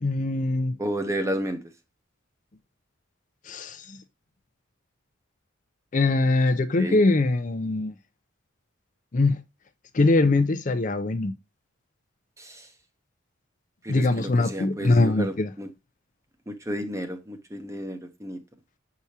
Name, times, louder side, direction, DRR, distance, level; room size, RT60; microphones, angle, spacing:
voice 1, 0.0-0.7 3.5-4.0 5.9-7.9 9.1-9.4 9.9-11.3 13.9-15.5, left 2 dB, 40° left, 0.5 m, -22 dB
voice 2, 0.8-1.6 6.7-7.0 12.4-12.7 13.8-15.7 16.5-18.4, right 1 dB, 15° right, 0.8 m, -32 dB
7.0 x 4.8 x 2.8 m
head